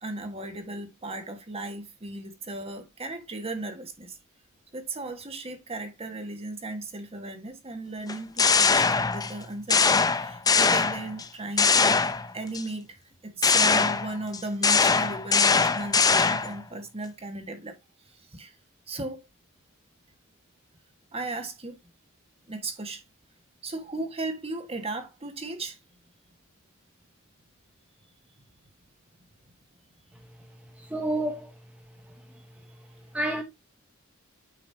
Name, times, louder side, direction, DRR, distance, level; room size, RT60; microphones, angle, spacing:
voice 1, 0.0-4.1 4.7-12.0 12.3-13.0 13.2-17.8 18.3-18.5 18.9-19.2 21.1-21.8 22.5-23.0 23.6-25.8, right 2 dB, 30° right, 1.6 m, -36 dB
sound 1, 8.1-9.4 9.7-11.2 11.6-12.6 13.4-16.6, left 5 dB, 20° left, 0.6 m, -22 dB
voice 2, 30.9-31.5 33.1-33.4, right 1 dB, 5° right, 0.9 m, -28 dB
8.9 x 5.4 x 2.7 m
head